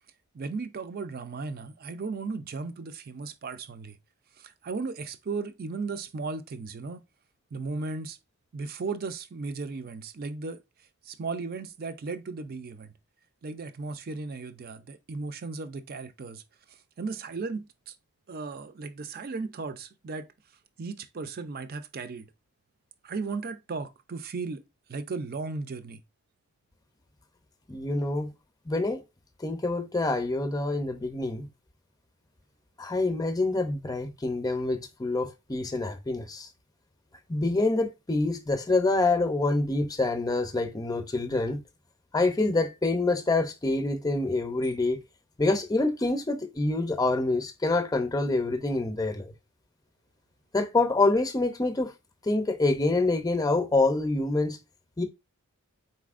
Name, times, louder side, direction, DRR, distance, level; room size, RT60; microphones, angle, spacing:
voice 1, 0.3-4.0 4.4-7.0 7.5-8.2 8.5-10.6 11.0-12.9 13.4-16.4 16.7-18.0 18.3-20.3 20.8-22.3 23.0-24.6 24.9-26.0, right 4 dB, 40° right, 0.5 m, -36 dB
voice 2, 27.7-28.3 28.7-29.0 29.4-31.4 32.8-36.5 37.3-41.6 42.1-45.0 45.4-49.3 50.5-51.9 52.2-54.6 55.0-55.1, left 2 dB, 15° left, 0.6 m, -26 dB
4.2 x 3.9 x 2.4 m
head